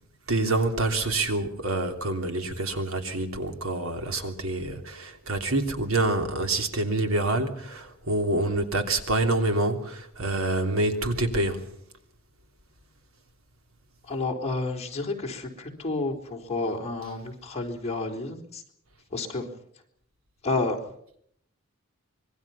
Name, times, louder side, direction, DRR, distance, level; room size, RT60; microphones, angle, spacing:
voice 1, 0.3-11.7, right 2 dB, 85° right, 3.1 m, -27 dB
voice 2, 14.1-18.6 19.1-19.5 20.4-20.8, left 3 dB, 30° left, 4.0 m, -30 dB
25.5 x 22.0 x 5.8 m
head